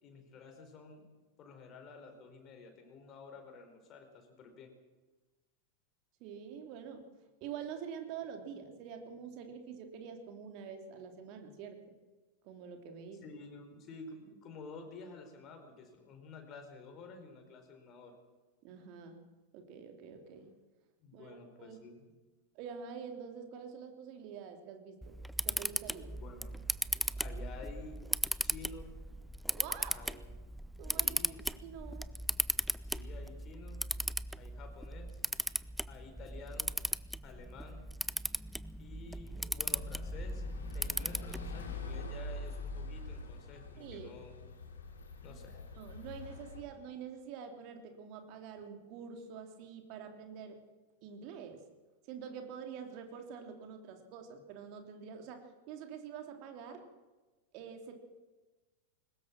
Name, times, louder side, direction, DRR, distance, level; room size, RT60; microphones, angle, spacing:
voice 1, 0.0-1.0 1.4-4.7 13.2-18.2 21.0-22.1 26.1-26.7 27.2-28.0 28.4-28.9 29.9-30.3 31.0-31.4 32.8-33.8 34.4-35.2 35.9-36.7 37.2-37.9 38.8-40.4 40.7-44.3 45.2-45.6, left 4 dB, 30° left, 5 dB, 4.7 m, -51 dB
voice 2, 6.2-7.0 7.4-11.8 12.4-13.3 18.6-19.2 19.5-20.5 21.1-21.8 22.5-25.2 25.4-26.2 29.5-30.0 30.8-31.2 31.6-32.1 43.8-44.1 45.3-45.4 45.7-50.6 51.0-51.6 52.1-56.8 57.5-57.9, right 7 dB, 45° right, 4 dB, 3.3 m, -46 dB
Camera, 25.0-41.7, right 1 dB, ahead, 0.6 m, -37 dB
sound 1, 39.7-46.6, left 3 dB, 65° left, 3.1 m, -45 dB
21.5 x 19.5 x 6.2 m, 1.2 s
figure-of-eight pair, 90°, 0 cm